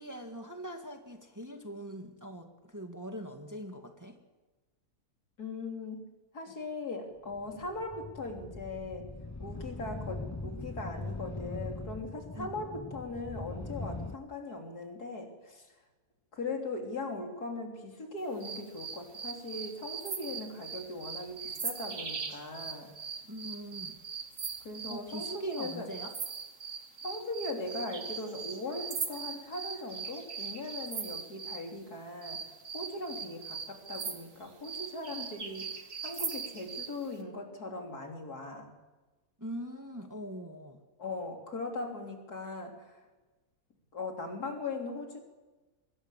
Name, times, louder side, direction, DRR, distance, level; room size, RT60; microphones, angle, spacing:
voice 1, 0.0-4.2 12.4-12.5 23.3-24.0 24.9-26.1 39.4-40.8, equal, 10° right, 4 dB, 1.9 m, -42 dB
voice 2, 5.4-6.0 6.3-9.1 9.4-15.7 16.3-22.9 24.6-25.9 27.0-32.5 32.7-38.7 41.0-43.0 43.9-45.2, left 2 dB, 75° left, 2 dB, 3.9 m, -39 dB
sound 1, 7.3-14.2, left 3 dB, 20° left, 0.4 m, -41 dB
sound 2, 18.4-31.7 32.2-37.0, right 6 dB, 55° right, 2.0 m, -40 dB
24.5 x 20.5 x 7.5 m, 1.2 s
omnidirectional pair, 1.7 m